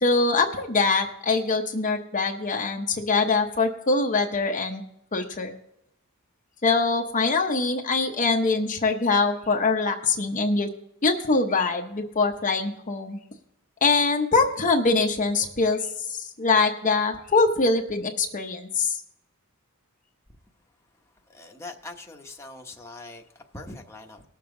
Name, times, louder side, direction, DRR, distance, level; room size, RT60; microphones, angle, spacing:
voice 1, 0.0-4.8 5.1-5.5 6.6-10.7 11.0-13.2 13.8-15.8 16.1-19.0, left 3 dB, 35° left, 2 dB, 0.9 m, -23 dB
voice 2, 21.3-23.2 23.5-24.2, left 2 dB, 10° left, 1 dB, 1.1 m, -41 dB
19.0 x 7.1 x 3.8 m, 0.80 s
head